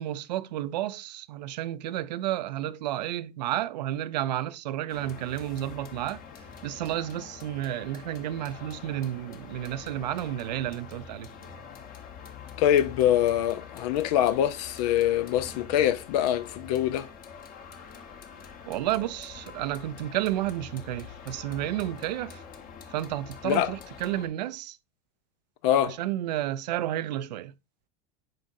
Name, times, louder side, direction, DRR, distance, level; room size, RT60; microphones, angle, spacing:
voice 1, 0.0-6.2 6.6-11.3 18.7-22.4 22.9-24.8 25.8-27.5, right 13 dB, 85° right, 0.6 m, -31 dB
sound 1, 4.9-24.3, left 6 dB, 45° left, 1.2 m, -45 dB
voice 2, 12.6-17.1 23.4-23.7 25.6-26.0, left 11 dB, 70° left, 0.6 m, -24 dB
7.6 x 4.9 x 2.6 m
supercardioid pair, 105°, 21 cm